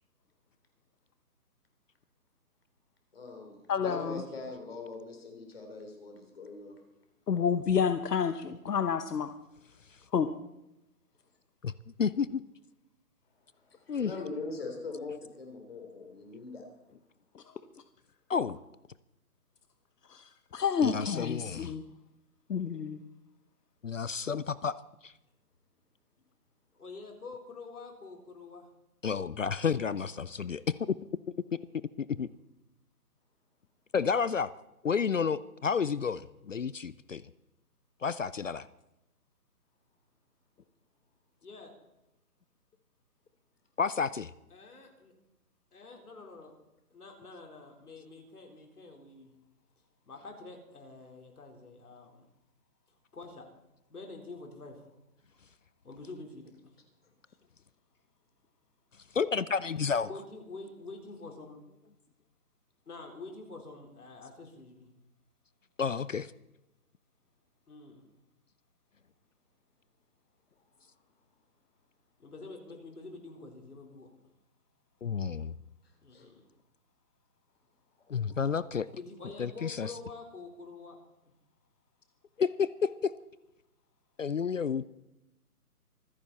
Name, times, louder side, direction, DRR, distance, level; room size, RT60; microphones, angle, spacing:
voice 1, 3.1-6.7 13.6-16.6 76.1-76.3, left 3 dB, 40° left, 3 dB, 3.4 m, -42 dB
voice 2, 3.7-4.2 7.3-9.3 10.1-10.3 17.3-17.4 20.1-21.8 22.5-23.0, left 7 dB, 90° left, 9 dB, 1.1 m, -29 dB
voice 3, 12.0-12.4 13.9-14.1 18.3-18.6 20.8-21.7 23.8-24.7 25.0-25.1 29.0-31.0 32.0-32.3 33.9-34.5 34.8-37.2 38.0-38.7 43.8-44.3 59.1-60.1 65.8-66.3 75.0-75.5 78.1-78.9 79.4-79.9 82.4-83.1 84.2-84.8, left 6 dB, 55° left, 18 dB, 0.5 m, -30 dB
voice 4, 26.7-28.7 41.4-41.7 44.5-45.1 45.7-46.5 46.9-49.3 50.1-52.2 53.1-53.5 53.9-54.9 55.8-56.5 60.1-61.6 62.9-64.9 67.7-68.1 72.2-74.1 76.0-76.4 78.9-81.0 81.2-81.3, left 3 dB, 70° left, 2 dB, 4.3 m, -47 dB
25.0 x 10.5 x 4.2 m, 0.89 s
hypercardioid pair, 175°, 46 cm